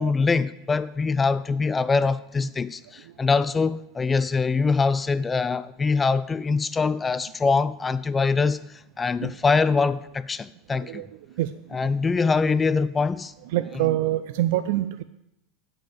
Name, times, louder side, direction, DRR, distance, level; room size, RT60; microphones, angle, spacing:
voice 1, 0.0-8.6 9.0-11.0 11.7-13.3, left 4 dB, 15° left, 0.3 m, -23 dB
voice 2, 13.5-15.0, right 14 dB, 70° right, 0.4 m, -25 dB
8.9 x 5.4 x 7.7 m
supercardioid pair, 125°, 0 cm